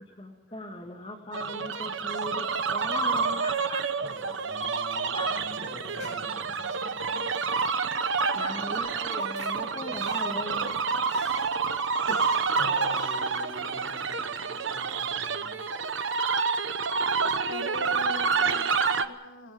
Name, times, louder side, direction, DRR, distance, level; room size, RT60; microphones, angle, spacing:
voice 1, 0.2-3.8 5.1-5.4 8.3-11.0, left 1 dB, 30° left, 2 dB, 2.2 m, -38 dB
voice 2, 1.3-1.7 3.6-7.3 9.8-10.0 11.8-15.7, left 1 dB, 75° left, -5 dB, 7.5 m, -46 dB
sound 1, 1.3-19.1, right 5 dB, 80° right, 1.1 m, -28 dB
sound 2, 5.0-5.1 5.3-5.4 5.8-6.8 7.9-8.1 8.4-11.6 12.1-13.9 14.3-14.4, left 2 dB, 55° left, 2.8 m, -48 dB
voice 3, 17.3-19.5, left 3 dB, 90° left, 6 dB, 1.8 m, -40 dB
28.0 x 18.5 x 5.4 m, 1.0 s
head